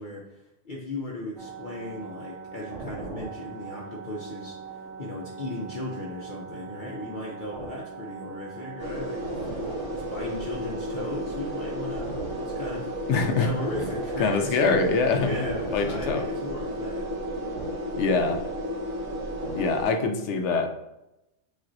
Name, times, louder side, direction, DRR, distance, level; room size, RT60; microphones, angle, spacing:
voice 1, 0.0-9.3 9.9-12.9 13.4-14.8 15.2-17.1, left 2 dB, 50° left, -3 dB, 0.7 m, -36 dB
sound 1, 1.4-20.1, right 5 dB, 80° right, 1.1 m, -40 dB
sound 2, 8.8-19.9, equal, 55° right, 1.8 m, -33 dB
voice 2, 13.1-13.5 14.2-15.3 15.7-16.2 18.0-18.4 19.5-20.7, left 4 dB, 80° left, 5 dB, 0.9 m, -24 dB
7.3 x 2.4 x 2.6 m, 0.92 s
omnidirectional pair, 1.2 m